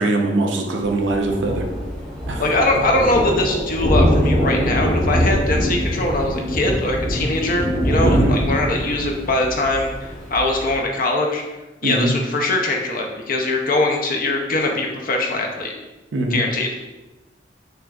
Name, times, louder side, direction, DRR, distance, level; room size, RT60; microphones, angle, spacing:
voice 1, 0.0-1.7 2.3-2.4 8.1-8.3 11.8-12.2 16.1-16.4, right 2 dB, 70° right, 2 dB, 0.6 m, -21 dB
Thunder, 0.8-10.8, equal, 5° left, 1.2 m, -23 dB
voice 2, 2.4-11.4 11.8-15.7 16.3-16.7, left 2 dB, 50° left, 2 dB, 0.6 m, -22 dB
sound 1, 5.6-8.9, equal, 30° right, 1.4 m, -32 dB
6.3 x 2.6 x 2.3 m, 1.1 s
head